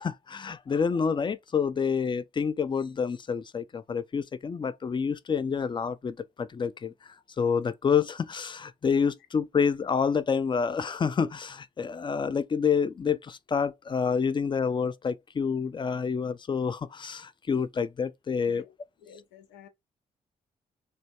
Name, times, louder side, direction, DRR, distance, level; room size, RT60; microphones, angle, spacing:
voice 1, 0.0-18.6, left 6 dB, 25° left, 0.4 m, -28 dB
voice 2, 19.0-19.7, left 8 dB, 85° left, 0.6 m, -51 dB
3.2 x 2.2 x 2.8 m
supercardioid pair, 50°, 18 cm